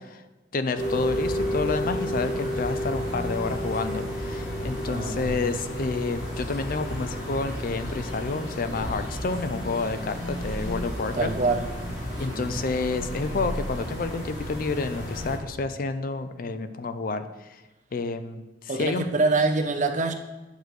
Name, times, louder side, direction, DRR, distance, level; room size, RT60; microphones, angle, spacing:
voice 1, 0.5-11.3 12.2-17.6 17.9-19.0, left 3 dB, 50° left, 11 dB, 0.4 m, -29 dB
sound 1, 0.8-15.4, equal, 85° left, 2.9 m, -32 dB
voice 2, 4.8-5.3 11.1-11.7 12.3-12.5 18.7-20.1, right 3 dB, 45° right, 5 dB, 0.7 m, -25 dB
9.4 x 6.6 x 3.2 m, 1.1 s
head